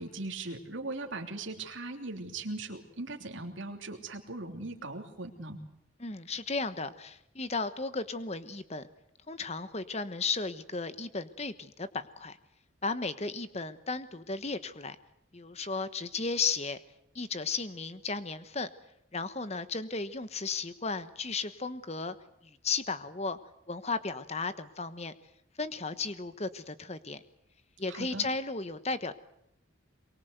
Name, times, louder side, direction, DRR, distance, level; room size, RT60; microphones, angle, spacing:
voice 1, 0.0-5.6 27.9-28.3, right 2 dB, 70° right, 4 dB, 3.2 m, -39 dB
voice 2, 6.0-8.9 9.3-12.4 12.8-15.0 15.3-16.8 17.1-18.7 19.1-22.1 22.4-23.4 23.7-25.1 25.6-27.2 27.8-29.1, left 4 dB, 30° left, 12 dB, 1.2 m, -34 dB
24.0 x 23.0 x 8.1 m, 0.80 s
head